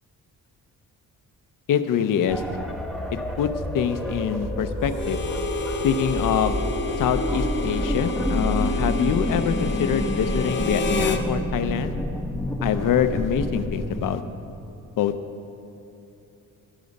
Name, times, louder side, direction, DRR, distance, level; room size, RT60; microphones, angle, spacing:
voice 1, 1.7-2.4 3.4-3.5 3.7-5.2 5.8-6.6 7.0-11.9 12.6-14.2 15.0-15.1, left 8 dB, 65° left, 10 dB, 0.7 m, -24 dB
sound 1, 2.3-14.1, equal, ahead, 0.8 m, -28 dB
Harmonica, 4.9-11.2, left 3 dB, 35° left, 0.8 m, -30 dB
16.0 x 6.9 x 5.3 m, 2.9 s
cardioid pair, 115°, 35 cm